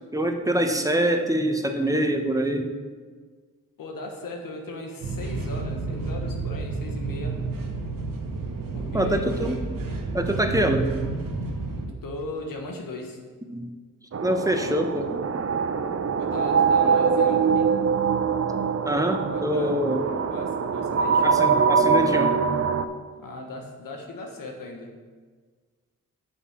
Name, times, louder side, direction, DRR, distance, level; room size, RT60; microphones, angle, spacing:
voice 1, 0.1-2.7 8.9-9.6 10.1-10.9 13.5-13.7 14.2-15.2 18.8-20.1 21.2-22.4, right 1 dB, 10° right, 5 dB, 1.1 m, -24 dB
voice 2, 3.8-7.4 8.7-9.3 11.9-13.2 16.2-17.7 19.3-21.2 23.2-24.9, left 2 dB, 85° left, 2 dB, 1.3 m, -37 dB
sound 1, 5.0-11.9, right 3 dB, 85° right, 1.1 m, -31 dB
sound 2, 14.1-22.9, right 6 dB, 45° right, 0.6 m, -23 dB
7.0 x 5.5 x 7.1 m, 1.5 s
cardioid pair, 50°, 33 cm